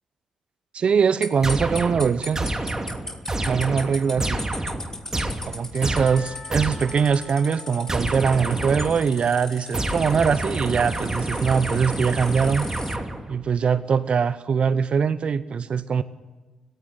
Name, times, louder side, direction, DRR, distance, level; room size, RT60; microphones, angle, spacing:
voice 1, 0.7-2.5 3.5-4.5 5.5-12.7 13.3-16.0, right 6 dB, 55° right, 15 dB, 0.8 m, -22 dB
sound 1, 1.2-13.0, left 2 dB, 20° left, 1.9 m, -38 dB
sound 2, 1.4-7.1 7.9-9.2 9.7-13.4, right 1 dB, 25° right, 2.7 m, -29 dB
Percussion / Church bell, 5.8-10.0, left 3 dB, 40° left, 2.8 m, -46 dB
16.0 x 16.0 x 10.0 m, 1.3 s
hypercardioid pair, 40°, 2 cm